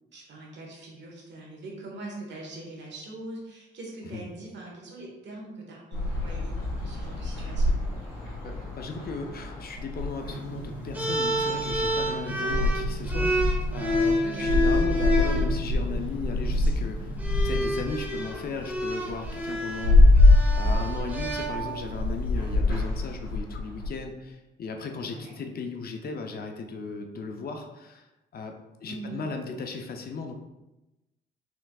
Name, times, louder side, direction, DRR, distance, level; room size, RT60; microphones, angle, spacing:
voice 1, 0.1-7.8 12.4-12.6 14.2-14.5 25.0-25.3 28.9-29.2, right 2 dB, 65° right, -1 dB, 1.3 m, -42 dB
sound 1, 5.9-23.9, left 2 dB, 90° left, 1.4 m, -26 dB
voice 2, 8.4-13.4 13.7-17.2 17.4-20.2 20.6-28.1 28.3-28.5 28.8-30.3, left 4 dB, 50° left, 4 dB, 0.5 m, -36 dB
sound 2, 10.2-17.9, right 2 dB, 85° right, 1.2 m, -40 dB
sound 3, 10.9-15.5 16.5-16.7 17.2-22.0, equal, 10° right, 0.9 m, -29 dB
4.5 x 3.5 x 2.3 m, 1.0 s
cardioid pair, 90°, 20 cm